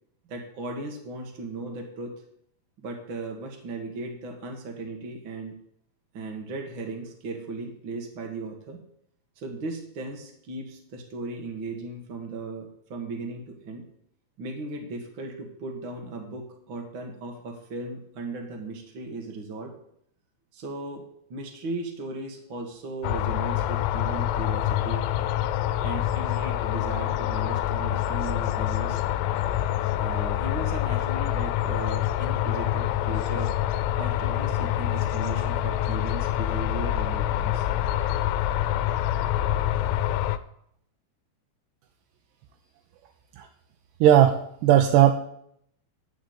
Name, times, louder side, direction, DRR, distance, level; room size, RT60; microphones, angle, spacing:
voice 1, 0.3-2.1 2.8-5.6 6.1-8.8 9.4-13.8 14.4-19.7 20.5-25.1 25.8-29.0 29.9-33.5 33.9-37.7, right 3 dB, 55° right, 2 dB, 1.3 m, -37 dB
sound 1, 23.0-40.4, left 12 dB, 90° left, 2.7 m, -26 dB
voice 2, 44.0-45.1, right 11 dB, 85° right, 5 dB, 2.8 m, -17 dB
11.5 x 5.1 x 8.6 m, 0.70 s
omnidirectional pair, 4.8 m